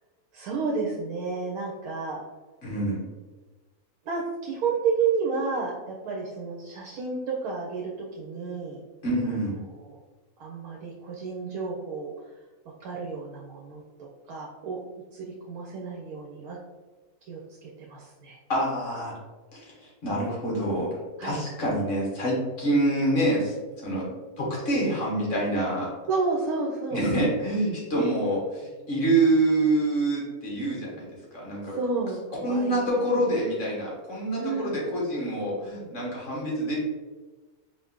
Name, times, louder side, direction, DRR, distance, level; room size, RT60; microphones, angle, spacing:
voice 1, 0.3-2.2 4.0-8.8 9.8-10.0 10.4-12.1 12.8-14.8 15.1-16.6 17.2-18.4 21.2-21.4 26.1-27.0 27.9-28.1 31.6-32.8 34.4-34.8, right 4 dB, 75° right, -2 dB, 1.1 m, -31 dB
voice 2, 2.6-3.0 9.0-9.6 18.5-19.1 19.5-19.7 20.0-24.1 24.4-25.9 26.9-31.7 32.4-36.8, right 1 dB, 55° left, -4 dB, 1.7 m, -26 dB
4.3 x 2.6 x 3.5 m, 1.3 s
omnidirectional pair, 1.6 m